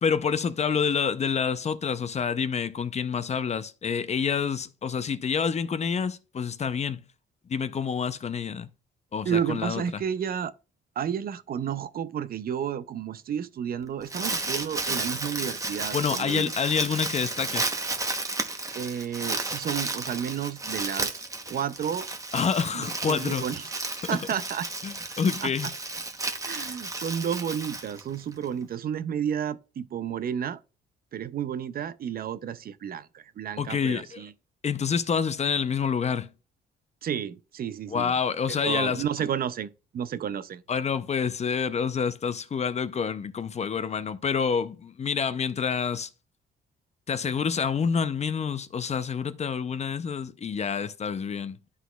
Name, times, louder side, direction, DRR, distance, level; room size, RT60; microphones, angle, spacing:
voice 1, 0.0-7.0 7.5-8.7 9.1-10.0 15.9-17.7 22.3-23.5 24.8-25.7 33.6-34.3 34.6-36.3 37.9-39.0 40.7-46.1 47.1-51.6, left 6 dB, 35° left, 0.5 m, -28 dB
voice 2, 9.2-10.5 11.0-16.5 18.8-21.1 21.5-22.1 22.7-23.7 24.1-24.7 25.4-25.5 26.4-30.6 31.1-34.3 37.0-38.1 38.5-40.6, right 8 dB, 50° right, 0.5 m, -31 dB
Crumpling crinkling, 13.8-28.4, right 2 dB, 15° right, 0.8 m, -33 dB
11.0 x 4.1 x 2.2 m
cardioid pair, 90°, 20 cm